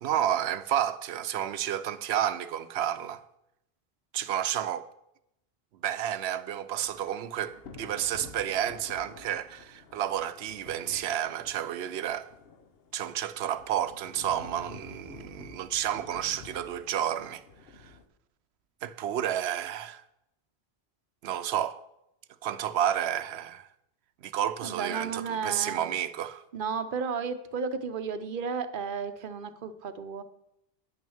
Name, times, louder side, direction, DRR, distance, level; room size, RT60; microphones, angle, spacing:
voice 1, 0.0-3.2 4.1-4.9 5.8-12.3 12.9-17.4 17.7-17.9 18.8-20.0 21.2-21.8 22.4-23.7 24.2-26.4, right 10 dB, 85° right, 0.9 m, -31 dB
Thunder / Rain, 6.7-18.1, left 4 dB, 65° left, 1.1 m, -50 dB
voice 2, 24.6-25.9 26.5-30.2, right 5 dB, 60° right, 0.8 m, -33 dB
9.7 x 6.2 x 7.0 m
omnidirectional pair, 1.1 m